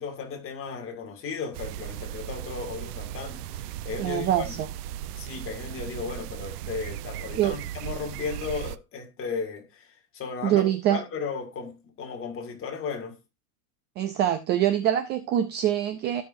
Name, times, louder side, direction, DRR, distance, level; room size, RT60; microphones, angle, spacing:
voice 1, 0.0-4.6 5.1-13.2, left 5 dB, 25° left, 2.2 m, -35 dB
sound 1, 1.5-8.8, right 12 dB, 70° right, 0.7 m, -37 dB
voice 2, 4.0-4.7 7.4-7.6 10.4-11.0 14.0-16.2, right 11 dB, 25° right, 0.4 m, -24 dB
16.5 x 5.7 x 2.6 m
supercardioid pair, 150°, 48 cm